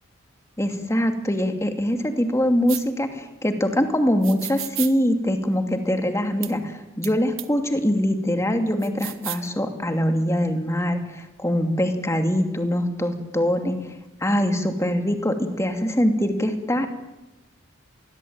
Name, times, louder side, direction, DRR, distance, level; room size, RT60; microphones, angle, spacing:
voice 1, 0.6-13.8 14.2-17.0, equal, 15° left, 6 dB, 2.7 m, -23 dB
sound 1, 2.7-2.8 4.2-4.9 6.4-6.5 7.0-7.1 7.4-7.5 8.8-9.5, right 16 dB, 80° right, 1.4 m, -32 dB
26.0 x 21.5 x 8.9 m, 0.97 s
head